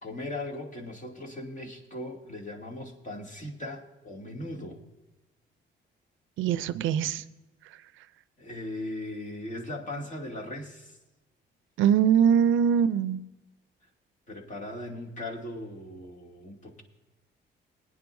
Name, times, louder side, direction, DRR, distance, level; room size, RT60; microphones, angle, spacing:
voice 1, 0.0-4.8 8.4-11.0 14.3-16.8, left 1 dB, 40° left, 0 dB, 2.6 m, -38 dB
voice 2, 6.4-7.2 11.8-13.2, right 8 dB, 85° right, 15 dB, 0.5 m, -22 dB
19.5 x 9.9 x 2.6 m, 1.0 s
cardioid pair, 90°, 20 cm